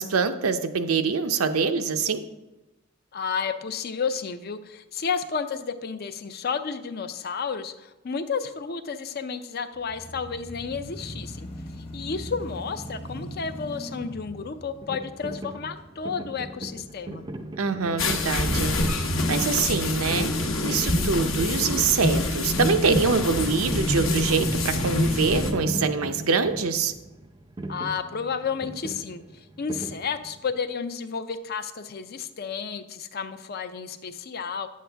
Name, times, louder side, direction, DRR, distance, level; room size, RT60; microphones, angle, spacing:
voice 1, 0.0-2.2 17.6-20.3 20.6-26.9, right 5 dB, 85° right, 8 dB, 0.6 m, -25 dB
voice 2, 3.1-11.5 11.9-17.2 27.7-29.2 29.6-34.7, left 5 dB, 45° left, 10 dB, 0.5 m, -31 dB
sound 1, 9.8-17.9 18.4-18.5 23.0-27.5, equal, 30° left, 1.0 m, -41 dB
sound 2, 14.8-30.6, right 1 dB, 20° right, 0.4 m, -37 dB
sound 3, 18.0-25.5, left 2 dB, 70° left, 1.0 m, -26 dB
9.6 x 7.5 x 3.4 m, 1.0 s
head